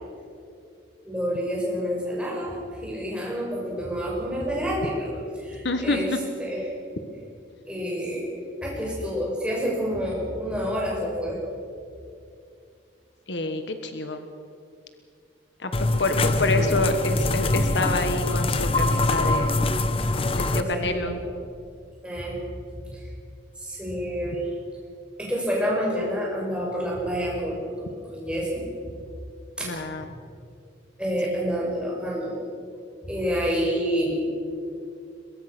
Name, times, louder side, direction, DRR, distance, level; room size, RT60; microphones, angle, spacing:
voice 1, 1.0-6.6 7.7-8.3 8.6-11.4 16.5-16.8 20.5-21.2 22.0-22.4 22.7-23.0 23.6-24.4 25.2-28.7 29.6-29.7 30.0-30.2 31.0-32.3 33.0-34.3, equal, 5° right, -4 dB, 6.3 m, -28 dB
voice 2, 5.6-6.0 13.3-14.2 15.6-15.7 16.0-19.6 20.3-21.2 29.6-30.0, left 2 dB, 70° left, 7 dB, 1.4 m, -27 dB
sound 1, 15.7-20.6, left 2 dB, 30° left, 0.9 m, -23 dB
23.0 x 22.0 x 6.1 m, 2.4 s
head